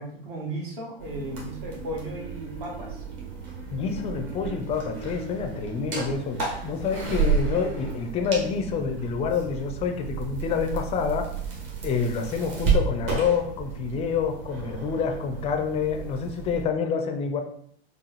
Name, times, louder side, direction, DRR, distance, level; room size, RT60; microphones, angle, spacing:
voice 1, 0.0-3.0, right 1 dB, 55° right, -2 dB, 1.5 m, -35 dB
sound 1, 1.0-16.6, right 5 dB, 35° right, 1.5 m, -32 dB
voice 2, 3.7-11.3 11.8-17.4, left 6 dB, 20° left, 5 dB, 0.4 m, -27 dB
4.5 x 2.4 x 3.0 m, 0.66 s
hypercardioid pair, 100°, 32 cm